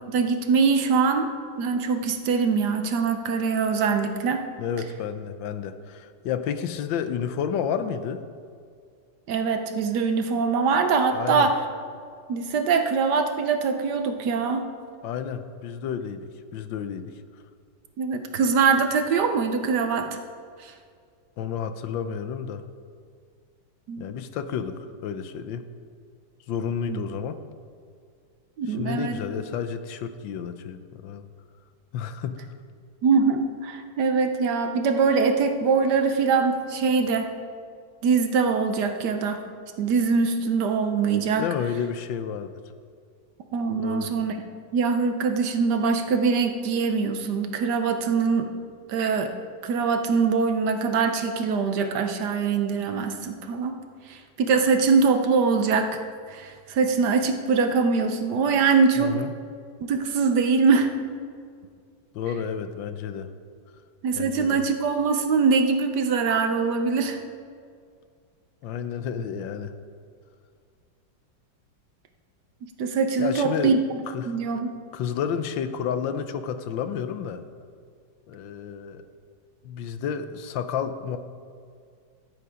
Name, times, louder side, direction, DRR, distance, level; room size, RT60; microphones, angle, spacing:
voice 1, 0.1-1.3 1.6-4.4 9.3-11.6 12.3-14.6 18.0-20.2 20.6-20.7 23.9-24.0 26.9-27.0 28.6-29.2 33.0-37.3 38.0-39.4 39.8-41.4 43.5-44.3 44.7-48.5 48.9-49.3 49.6-53.7 54.1-56.0 56.3-59.2 59.8-60.9 64.0-67.2 72.8-73.8 74.3-74.7, right 5 dB, 65° right, 6 dB, 1.3 m, -23 dB
voice 2, 4.6-8.2 11.1-11.5 15.0-17.1 21.4-22.6 24.0-25.7 26.5-27.4 28.7-31.3 31.9-32.4 41.4-42.6 43.8-44.1 59.0-59.3 62.1-63.3 64.1-64.6 68.6-69.7 73.2-73.8 74.1-74.4 74.9-77.4 78.3-79.0 79.6-81.2, left 7 dB, 80° left, 10 dB, 1.4 m, -31 dB
13.5 x 8.1 x 5.0 m, 2.2 s
omnidirectional pair, 2.1 m